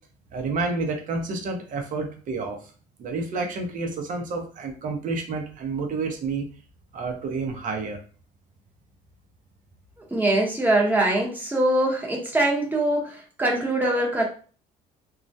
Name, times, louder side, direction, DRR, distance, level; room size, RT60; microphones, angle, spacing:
voice 1, 0.3-2.6 3.0-6.5 6.9-8.0, right 3 dB, 50° right, 3 dB, 0.6 m, -29 dB
voice 2, 10.1-14.2, right 1 dB, 10° right, -1 dB, 0.7 m, -23 dB
2.3 x 2.1 x 2.6 m, 0.40 s
cardioid pair, 110°, 17 cm